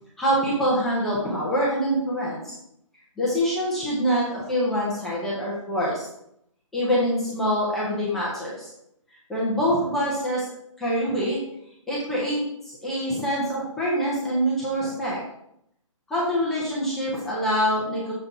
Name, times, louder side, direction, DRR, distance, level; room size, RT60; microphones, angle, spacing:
voice 1, 0.2-2.5 3.2-6.1 6.7-8.7 9.3-10.5 10.8-11.4 11.9-15.2 16.1-18.1, equal, ahead, -8 dB, 0.4 m, -25 dB
6.7 x 3.8 x 4.6 m, 0.76 s
hypercardioid pair, 170°, 17 cm